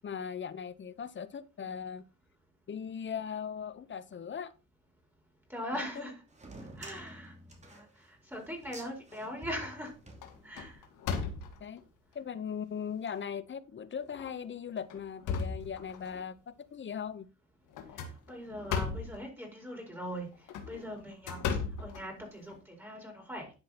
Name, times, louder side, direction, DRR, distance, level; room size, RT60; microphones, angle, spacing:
voice 1, 0.0-2.0 2.7-4.5 5.7-6.0 11.6-11.8 12.1-17.3, left 7 dB, 40° left, 16 dB, 0.8 m, -39 dB
voice 2, 5.5-6.2 6.8-7.3 7.7-9.9 10.4-10.8 17.9-20.3 20.6-21.4 21.8-23.5, equal, 5° right, 0 dB, 4.8 m, -41 dB
sound 1, 6.3-10.9, right 1 dB, 25° right, 2.9 m, -50 dB
sound 2, 8.6-9.2 9.6-9.9 10.2-11.8 12.5-12.6 13.1-13.2 14.1-14.3 14.8-16.2 17.7-19.2 20.3-22.6, left 5 dB, 85° left, 1.9 m, -36 dB
11.5 x 5.7 x 4.2 m, 0.33 s
cardioid pair, 90°, 30 cm